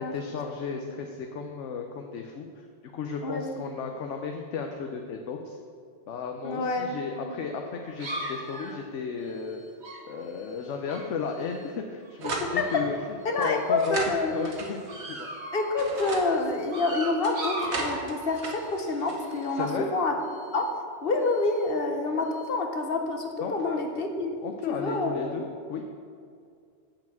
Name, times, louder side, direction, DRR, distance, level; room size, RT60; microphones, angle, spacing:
voice 1, 0.0-2.7 2.9-5.6 6.1-9.6 10.1-12.9 13.4-14.0 14.3-15.3 19.5-19.9 23.4-23.8 24.4-26.0, left 5 dB, 85° left, 3 dB, 1.0 m, -34 dB
voice 2, 3.2-3.6 6.4-6.9 7.1-7.4 12.4-12.7 13.2-14.3 15.5-20.1 20.5-20.7 21.0-24.3 24.7-25.3, left 3 dB, 55° left, 4 dB, 1.1 m, -27 dB
sound 1, 7.9-11.8 12.0-12.9 13.2-13.7 14.2-15.8 16.2-18.8 19.2-19.8 20.2-20.8 21.2-21.8 22.2-22.5, right 1 dB, 40° right, 1.4 m, -40 dB
sound 2, 12.2-12.5 13.4-15.2 15.6-16.3 17.2-19.7, right 3 dB, 70° right, 1.4 m, -36 dB
6.8 x 5.9 x 7.5 m, 2.3 s
omnidirectional pair, 1.2 m